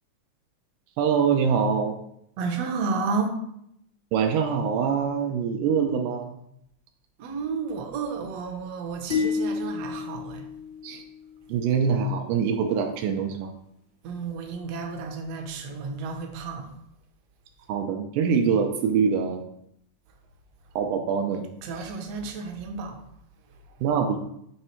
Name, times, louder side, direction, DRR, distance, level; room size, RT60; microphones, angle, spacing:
voice 1, 1.0-2.0 4.1-6.4 10.8-11.0 11.5-13.5 17.7-19.4 20.8-21.4 23.8-24.2, right 6 dB, 85° right, 3 dB, 2.1 m, -24 dB
voice 2, 2.4-3.4 7.2-10.5 14.0-16.7 21.6-23.0, right 4 dB, 70° right, 3 dB, 1.6 m, -31 dB
sound 1, 9.1-11.5, left 5 dB, 35° right, 0.7 m, -30 dB
7.1 x 3.2 x 4.4 m, 0.75 s
omnidirectional pair, 3.6 m